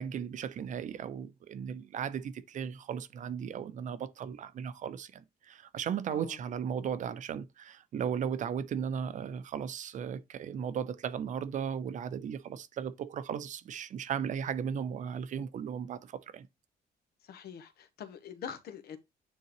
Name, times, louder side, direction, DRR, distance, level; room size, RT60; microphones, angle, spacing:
voice 1, 0.0-16.5, right 8 dB, 50° right, 0.6 m, -36 dB
voice 2, 17.2-19.0, left 8 dB, 80° left, 1.1 m, -44 dB
9.3 x 3.7 x 3.0 m
cardioid pair, 170°, 16 cm